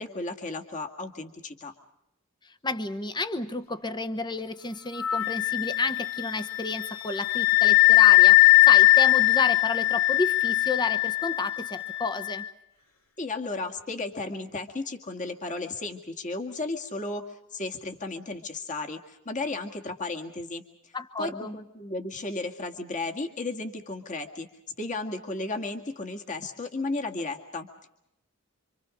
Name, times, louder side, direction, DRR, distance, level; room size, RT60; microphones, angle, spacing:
voice 1, 0.0-1.7 13.2-20.6 21.2-24.5 24.8-27.9, left 2 dB, 35° left, 3 dB, 2.0 m, -34 dB
voice 2, 2.4-12.4 20.9-21.6, left 3 dB, 20° left, 9 dB, 1.0 m, -31 dB
Wind instrument woodwind instrument, 5.0-12.4, left 20 dB, 75° left, 2.9 m, -20 dB
28.0 x 25.5 x 5.1 m, 0.85 s
head